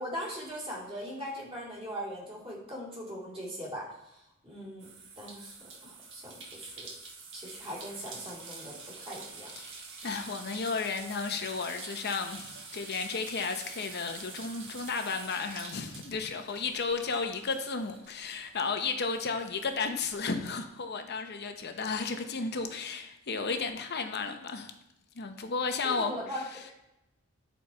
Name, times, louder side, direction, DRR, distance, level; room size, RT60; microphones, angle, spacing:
voice 1, 0.0-6.9 7.3-9.5 25.8-26.7, equal, 30° right, 2.8 m, -40 dB
sound 1, 4.8-18.8 19.2-20.4, right 4 dB, 60° right, 1.2 m, -47 dB
voice 2, 9.6-24.7 25.2-26.1, left 4 dB, 50° left, 0.8 m, -33 dB
8.5 x 4.2 x 4.3 m
head